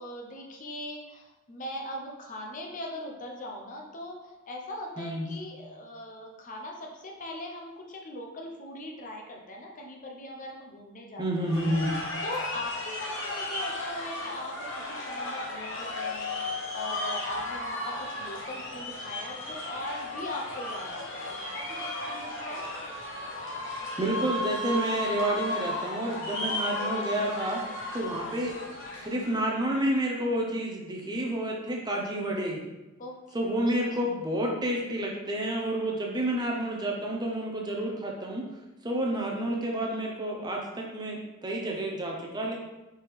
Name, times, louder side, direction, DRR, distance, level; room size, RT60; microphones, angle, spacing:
voice 1, 0.0-11.5 12.2-22.6 27.9-28.0 33.0-33.4, left 1 dB, 40° left, 0 dB, 0.7 m, -40 dB
voice 2, 11.2-11.9 24.0-27.6 27.9-28.6 28.9-32.6 33.3-38.5 38.8-42.5, right 1 dB, 20° right, -1 dB, 0.6 m, -29 dB
sound 1, 11.4-29.5, left 2 dB, 60° left, 0.9 m, -35 dB
4.4 x 3.4 x 3.5 m, 1.1 s
head